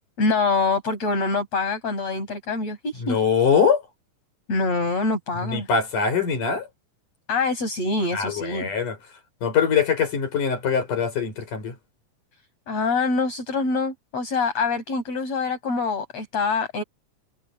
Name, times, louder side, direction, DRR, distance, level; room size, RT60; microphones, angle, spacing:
voice 1, 0.2-3.2 4.5-5.7 7.3-8.7 12.7-16.8, left 3 dB, 50° left, 9.1 m, -25 dB
voice 2, 3.0-3.8 5.4-6.7 8.1-9.0 9.4-11.8, left 6 dB, 75° left, 7.0 m, -22 dB
omnidirectional pair, 3.7 m